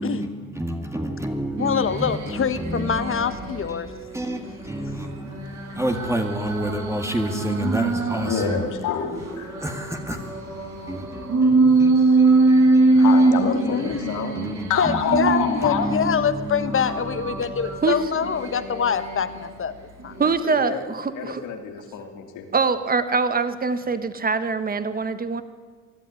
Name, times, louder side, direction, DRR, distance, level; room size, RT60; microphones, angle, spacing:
voice 1, 0.0-3.3 3.7-5.3 5.8-8.6 9.6-10.3 10.9-13.3 13.8-15.3 15.6-17.5, right 1 dB, 10° right, 2.1 m, -30 dB
voice 2, 1.6-3.9 12.9-14.1 14.7-19.7 20.0-20.2, left 7 dB, 45° left, 1.4 m, -25 dB
sound 1, 1.6-3.6 4.1-8.6 9.1-16.0 16.6-19.5 20.0-20.3, right 3 dB, 70° right, 5.0 m, -23 dB
voice 3, 8.3-9.6 13.0-14.3 14.7-15.9 20.4-20.8 21.1-22.5, left 7 dB, 85° left, 2.9 m, -28 dB
voice 4, 20.2-21.4 22.5-25.4, right 4 dB, 30° right, 1.4 m, -23 dB
22.0 x 12.5 x 9.9 m
cardioid pair, 90°, 30 cm